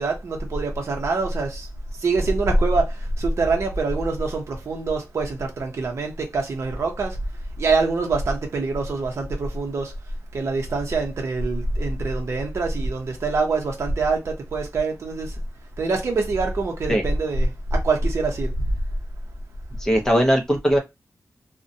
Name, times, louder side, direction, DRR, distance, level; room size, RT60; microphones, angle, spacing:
voice 1, 0.0-1.7 2.0-2.9 3.2-7.2 7.6-9.9 10.3-15.3 15.8-18.5, right 3 dB, 55° right, 0.6 m, -24 dB
voice 2, 19.8-20.8, equal, 10° left, 0.5 m, -19 dB
2.6 x 2.1 x 2.5 m
wide cardioid pair, 175°, 5 cm